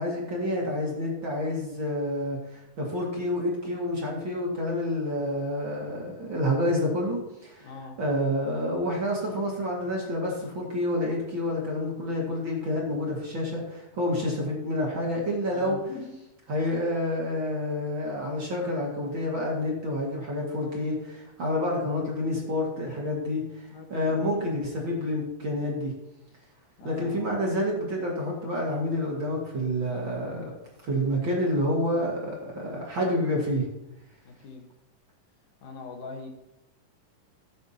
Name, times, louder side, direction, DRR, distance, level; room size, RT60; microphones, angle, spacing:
voice 1, 0.0-7.7 8.0-15.8 16.5-25.9 26.8-30.5 30.8-33.7, left 1 dB, 40° right, -3 dB, 2.4 m, -28 dB
voice 2, 7.6-8.0 15.5-16.1 23.7-24.5 26.8-27.3 34.2-34.6 35.6-36.3, left 4 dB, 70° left, 2 dB, 2.9 m, -42 dB
16.5 x 8.7 x 2.9 m, 0.90 s
omnidirectional pair, 4.0 m